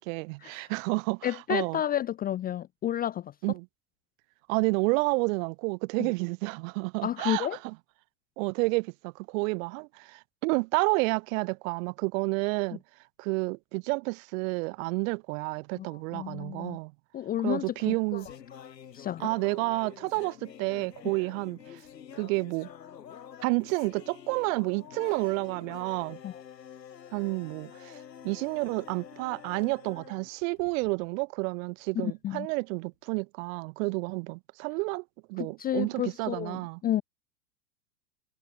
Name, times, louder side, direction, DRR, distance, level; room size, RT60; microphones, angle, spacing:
voice 1, 0.0-1.8 3.4-3.7 4.5-7.8 8.4-12.8 13.2-16.9 17.4-18.3 19.2-21.8 22.1-22.7 23.4-26.2 27.1-36.8, right 29 dB, 55° right, 2.1 m, -30 dB
voice 2, 1.2-3.3 6.0-6.1 7.0-7.6 15.8-15.9 16.1-16.8 17.1-18.2 18.9-19.3 26.2-26.4 32.0-32.5 35.4-36.6 36.8-37.0, left 11 dB, 20° left, 0.6 m, -31 dB
sound 1, 17.6-31.1, left 8 dB, 85° left, 6.9 m, -48 dB
hypercardioid pair, 110°, 49 cm